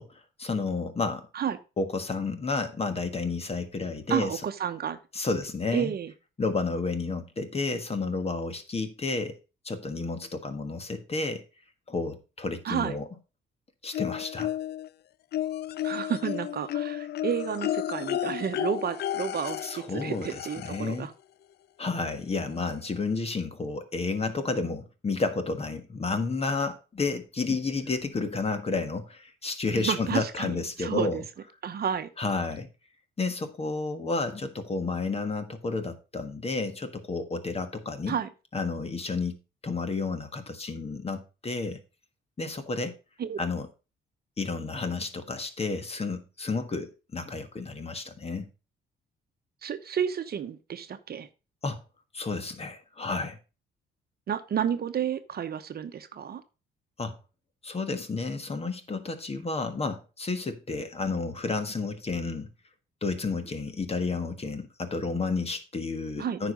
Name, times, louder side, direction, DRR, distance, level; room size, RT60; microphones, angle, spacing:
voice 1, 0.0-1.3 1.8-4.4 5.1-6.0 6.4-9.3 9.6-11.4 11.9-13.0 13.8-14.5 19.6-21.1 21.8-31.2 32.2-32.7 33.2-38.2 38.5-39.4 39.6-41.8 42.4-42.9 43.4-43.7 44.4-48.5 51.6-51.8 52.1-53.4 57.0-57.2 57.6-62.5 63.0-66.5, left 3 dB, 30° left, 1.5 m, -31 dB
voice 2, 4.1-5.0 5.7-6.1 12.6-13.0 15.8-21.1 29.8-31.2 31.6-32.1 38.1-38.3 43.2-43.4 49.6-51.3 54.3-56.4 66.2-66.4, right 8 dB, 50° right, 1.0 m, -31 dB
sound 1, 13.9-14.9 15.3-21.0 22.2-22.3 22.7-22.8, left 12 dB, 55° left, 0.4 m, -33 dB
9.4 x 5.1 x 5.1 m
cardioid pair, 90°, 20 cm